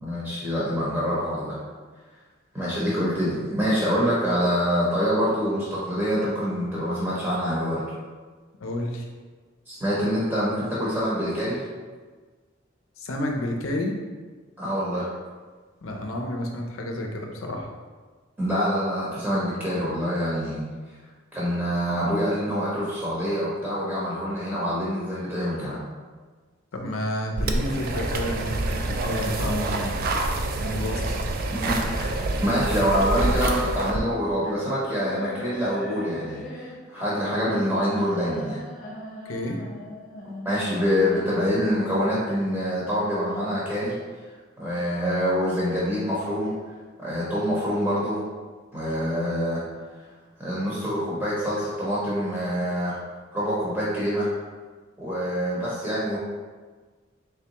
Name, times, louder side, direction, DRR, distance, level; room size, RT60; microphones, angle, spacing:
voice 1, 0.0-1.6 2.5-7.8 9.7-11.6 14.6-15.1 18.4-20.6 21.3-25.8 31.5-38.6 40.2-44.0 44.6-46.5 47.0-48.2 48.7-49.6 50.4-53.0 53.3-54.3 55.0-56.2, equal, 10° right, -8 dB, 0.7 m, -26 dB
voice 2, 8.6-9.1 13.0-14.0 15.8-17.7 26.7-30.0 30.6-31.2 39.3-39.6, left 1 dB, 85° left, 2 dB, 0.6 m, -30 dB
sound 1, 27.4-34.0, right 2 dB, 45° right, 0.3 m, -27 dB
sound 2, 32.9-41.9, left 2 dB, 40° left, 0.6 m, -39 dB
3.5 x 3.4 x 2.9 m, 1.4 s
head